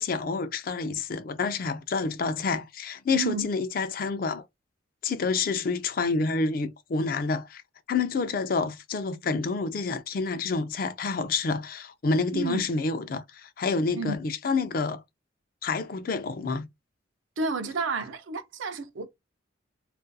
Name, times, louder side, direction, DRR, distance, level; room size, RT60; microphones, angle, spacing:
voice 1, 0.0-4.4 5.0-7.6 7.9-15.0 15.6-16.7, left 4 dB, 45° left, 0.4 m, -28 dB
voice 2, 3.1-3.5 12.3-12.6 14.0-14.2 17.4-19.1, right 4 dB, 75° right, 0.5 m, -31 dB
2.4 x 2.2 x 2.6 m
head